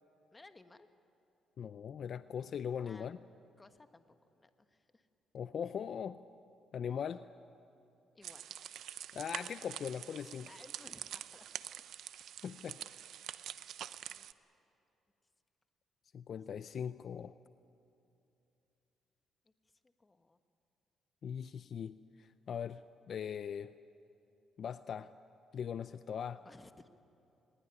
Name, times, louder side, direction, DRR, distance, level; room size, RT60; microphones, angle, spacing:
voice 1, 0.3-0.9 2.8-3.1 3.6-4.0 4.3-5.1 8.1-8.9 10.5-11.8 12.3-12.4 14.1-14.3 19.4-20.4 26.4-26.9, left 2 dB, 20° left, 9 dB, 1.3 m, -59 dB
voice 2, 1.6-3.2 5.3-6.2 6.7-7.3 9.1-10.5 12.4-13.0 16.1-17.3 21.2-22.8 23.1-23.7 24.6-25.1 25.5-26.4, left 8 dB, 60° left, 13 dB, 0.5 m, -40 dB
sound 1, 8.2-14.3, right 10 dB, 75° right, 0.6 m, -46 dB
21.5 x 20.0 x 9.9 m, 2.8 s
cardioid pair, 90°, 0 cm